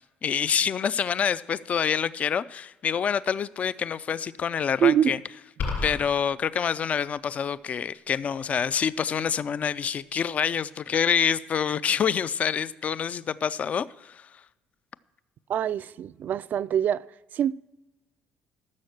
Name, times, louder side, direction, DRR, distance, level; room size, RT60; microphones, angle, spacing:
voice 1, 0.2-5.2 5.8-14.4, left 7 dB, 40° left, 0.4 m, -27 dB
voice 2, 4.8-5.1 15.5-17.0 17.3-17.5, right 9 dB, 50° right, 0.3 m, -24 dB
sound 1, 5.6-6.1, left 4 dB, 60° left, 3.6 m, -29 dB
14.0 x 6.4 x 6.5 m
cardioid pair, 115°, 4 cm